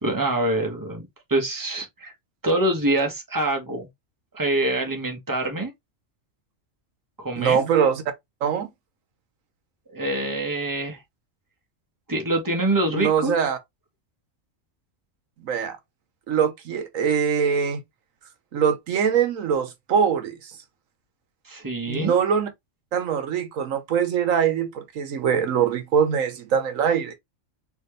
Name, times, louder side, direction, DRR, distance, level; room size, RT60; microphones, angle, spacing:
voice 1, 0.0-2.1 2.4-3.9 4.3-5.7 7.2-7.6 9.9-11.0 12.1-13.4 21.4-22.1, right 1 dB, 15° right, 1.3 m, -25 dB
voice 2, 7.4-8.0 8.4-8.7 12.9-13.6 15.4-15.8 16.3-17.8 18.5-20.5 21.9-22.5 22.9-27.2, right 7 dB, 85° right, 1.3 m, -23 dB
4.2 x 3.2 x 3.2 m
omnidirectional pair, 1.3 m